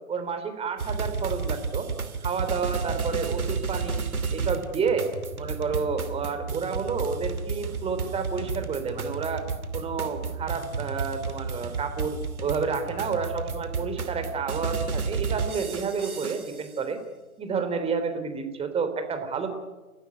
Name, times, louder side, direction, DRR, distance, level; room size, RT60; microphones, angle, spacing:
voice 1, 0.1-1.9 2.2-4.0 4.3-5.1 5.4-9.5 9.7-17.0 17.4-19.5, right 5 dB, 15° right, 8 dB, 3.4 m, -30 dB
sound 1, 0.8-16.7, right 5 dB, 85° right, 2.8 m, -32 dB
30.0 x 16.0 x 9.8 m, 1.2 s
hypercardioid pair, 135°, 42 cm